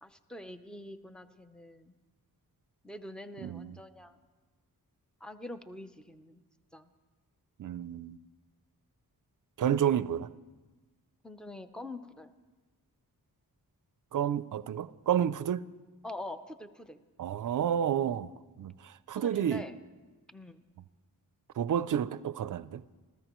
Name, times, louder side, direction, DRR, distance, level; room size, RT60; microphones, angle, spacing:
voice 1, 0.0-1.9 2.8-4.2 5.2-6.4 6.7-6.9 11.2-12.3 16.0-17.0 19.1-19.7 20.3-20.6, left 1 dB, ahead, 0.6 m, -45 dB
voice 2, 3.4-3.8 7.6-8.2 9.6-10.3 14.1-15.6 17.2-18.3 18.6-19.6 21.6-22.8, right 9 dB, 60° right, 0.5 m, -30 dB
27.5 x 14.5 x 3.0 m
wide cardioid pair, 120°, 37 cm